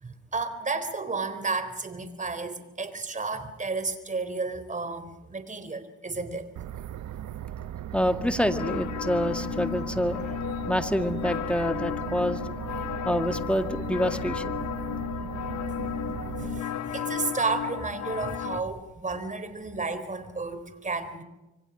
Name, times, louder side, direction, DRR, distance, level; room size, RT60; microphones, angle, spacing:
voice 1, 0.0-6.5 15.9-16.0 16.4-21.2, right 3 dB, 25° right, 10 dB, 3.9 m, -32 dB
sound 1, 6.6-16.6, right 11 dB, 70° right, 1.1 m, -38 dB
voice 2, 7.9-10.4 10.7-12.7 13.0-14.5, equal, 5° left, 7 dB, 2.0 m, -27 dB
sound 2, 8.4-18.6, left 9 dB, 65° left, 1.2 m, -33 dB
27.0 x 24.5 x 6.2 m, 1.0 s
cardioid pair, 90°, 30 cm